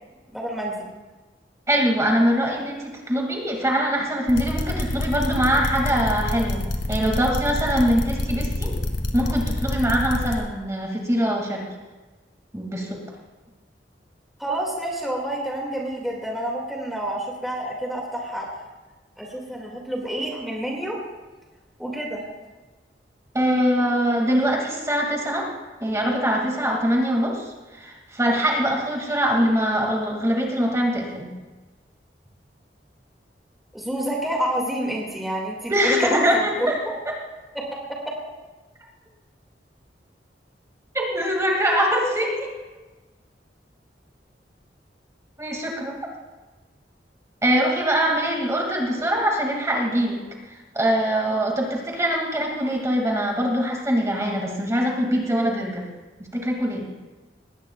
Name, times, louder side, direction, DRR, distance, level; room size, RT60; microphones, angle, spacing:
voice 1, 0.3-0.7 14.4-18.5 19.2-21.0 21.8-22.2 33.7-36.2 36.6-36.7, right 1 dB, ahead, -3 dB, 2.2 m, -28 dB
voice 2, 1.7-8.8 9.1-11.6 12.5-13.0 23.3-25.5 25.8-31.3 35.7-36.8 37.1-37.2 40.9-42.5 45.4-46.0 47.4-50.2 50.5-55.8 56.3-56.9, equal, 15° right, -1 dB, 2.3 m, -23 dB
sound 1, 4.3-10.4, left 1 dB, 85° left, 1.8 m, -27 dB
20.0 x 17.5 x 2.4 m, 1.2 s
head